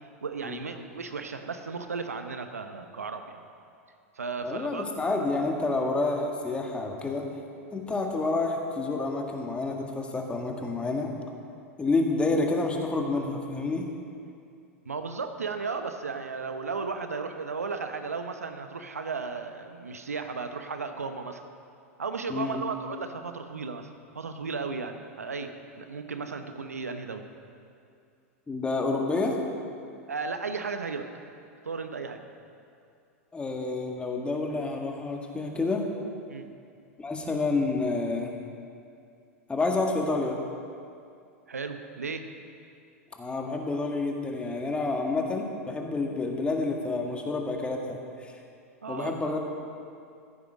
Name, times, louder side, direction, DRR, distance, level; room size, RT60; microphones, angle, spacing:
voice 1, 0.2-3.4 4.2-4.9 14.9-21.4 22.0-23.9 24.1-27.2 30.1-31.1 31.6-32.2 36.3-36.5 41.5-42.3 48.8-49.3, right 4 dB, 85° right, 7 dB, 0.8 m, -35 dB
voice 2, 4.4-7.2 7.7-11.1 11.8-13.9 22.3-22.6 28.5-29.4 33.3-35.8 37.0-38.3 39.5-40.4 43.2-48.3 48.9-49.4, left 3 dB, 15° left, 1 dB, 1.6 m, -29 dB
15.0 x 8.3 x 5.1 m, 2.5 s
hypercardioid pair, 100°, 8 cm